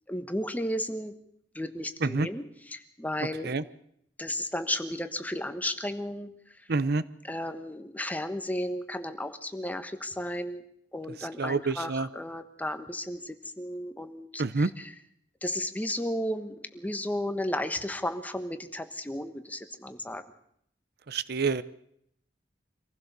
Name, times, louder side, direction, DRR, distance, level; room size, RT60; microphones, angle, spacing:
voice 1, 0.1-1.2 1.5-3.5 4.2-6.7 7.2-10.6 10.9-14.9 15.4-20.2, left 1 dB, 10° left, 8 dB, 1.3 m, -34 dB
voice 2, 6.7-7.0 11.4-12.1 14.4-14.7 21.1-21.6, right 3 dB, 60° right, 16 dB, 0.7 m, -27 dB
25.0 x 15.5 x 6.8 m, 0.71 s
head